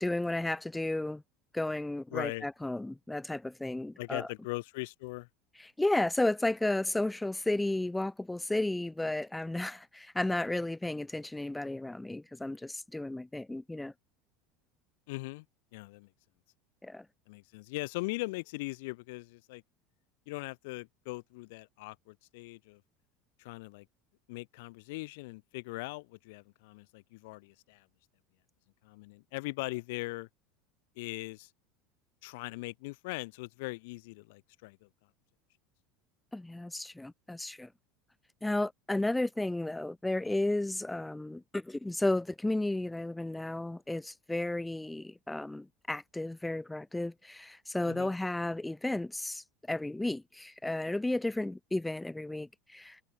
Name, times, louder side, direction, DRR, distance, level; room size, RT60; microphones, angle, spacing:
voice 1, 0.0-1.2 1.5-4.3 5.6-13.9 16.8-17.1 36.3-37.7 38.4-53.0, left 2 dB, 5° left, 0.3 m, -33 dB
voice 2, 2.1-2.5 4.0-5.3 15.1-15.4 15.7-16.1 17.3-19.6 20.3-22.8 23.4-23.9 24.3-27.8 28.8-30.3 31.0-31.5 32.2-34.9 47.9-48.1, left 24 dB, 75° left, 0.7 m, -40 dB
supercardioid pair, 145°, 0 cm